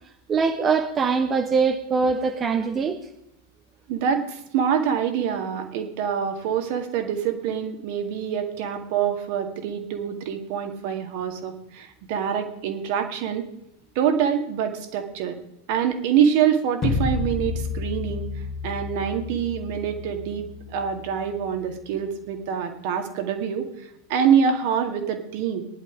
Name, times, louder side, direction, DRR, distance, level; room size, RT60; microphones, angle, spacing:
voice 1, 0.3-3.0, right 5 dB, 25° right, 5 dB, 1.1 m, -22 dB
voice 2, 3.9-13.5 14.0-15.4 15.7-18.3 18.6-23.7 24.1-25.6, right 8 dB, 45° right, 5 dB, 1.9 m, -25 dB
sound 1, 16.8-21.8, left 5 dB, 25° left, 2.0 m, -31 dB
16.5 x 11.0 x 5.1 m, 0.84 s
figure-of-eight pair, 90°, 0 cm